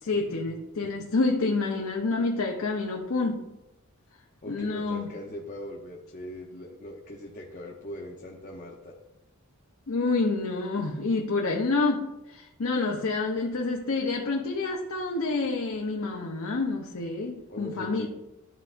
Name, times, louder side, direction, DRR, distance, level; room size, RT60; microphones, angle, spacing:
voice 1, 0.0-3.4 4.5-5.1 9.9-18.1, left 3 dB, 65° left, 0 dB, 0.6 m, -28 dB
voice 2, 4.4-8.9 17.5-18.1, left 1 dB, 35° left, -2 dB, 0.7 m, -40 dB
11.0 x 3.8 x 2.5 m, 0.94 s
head